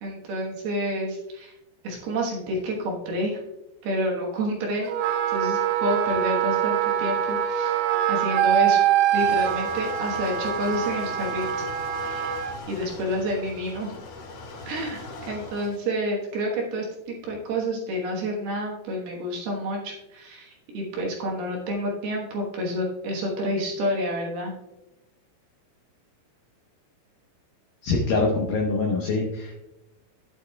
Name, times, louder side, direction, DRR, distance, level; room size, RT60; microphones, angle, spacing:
voice 1, 0.0-1.5 1.8-3.4 3.8-4.9 5.3-7.8 8.1-8.8 9.1-11.5 12.0-12.4 12.7-14.0 14.7-15.0 15.3-24.5, equal, 65° right, -2 dB, 2.8 m, -29 dB
Wind instrument woodwind instrument, 4.9-12.6, right 10 dB, 85° right, 2.6 m, -24 dB
sound 1, 9.1-15.8, left 3 dB, 60° left, 3.0 m, -40 dB
voice 2, 27.8-29.5, left 3 dB, 85° left, 0 dB, 2.0 m, -24 dB
11.5 x 9.0 x 2.3 m, 0.96 s
omnidirectional pair, 5.7 m